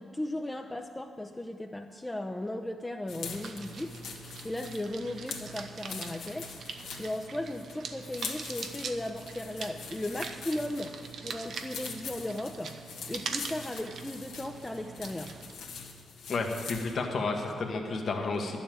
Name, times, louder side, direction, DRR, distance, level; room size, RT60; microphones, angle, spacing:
voice 1, 0.0-4.0 4.4-6.6 7.0-11.0 11.2-12.8 13.1-15.4, left 1 dB, 15° left, 3 dB, 0.7 m, -36 dB
sound 1, 3.1-17.0, left 5 dB, 80° left, 1.4 m, -44 dB
sound 2, 3.3-15.6, right 5 dB, 65° right, 0.8 m, -43 dB
voice 2, 16.3-18.6, left 3 dB, 60° left, 2 dB, 1.3 m, -31 dB
11.0 x 7.2 x 9.0 m, 2.2 s
supercardioid pair, 50°, 0 cm